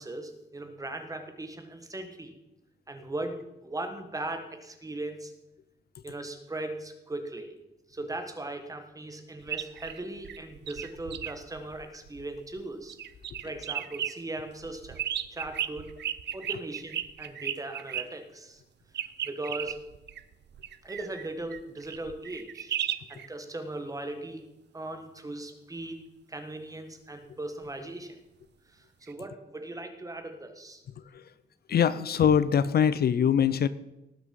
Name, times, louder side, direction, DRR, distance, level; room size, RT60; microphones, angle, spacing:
voice 1, 0.0-2.3 2.9-5.3 6.0-7.6 7.9-12.9 13.4-15.0 15.3-15.9 16.3-18.6 19.2-19.8 20.8-22.8 23.1-24.4 24.7-26.0 26.3-28.2 28.7-30.8, right 2 dB, 20° right, 6 dB, 1.5 m, -38 dB
sound 1, 9.4-12.6 12.9-14.1 14.6-18.0 18.9-23.3 29.1-29.2, right 10 dB, 75° right, 0.6 m, -35 dB
voice 2, 31.7-33.7, left 8 dB, 60° left, 16 dB, 0.5 m, -23 dB
18.5 x 6.2 x 5.3 m, 0.96 s
wide cardioid pair, 135°, 18 cm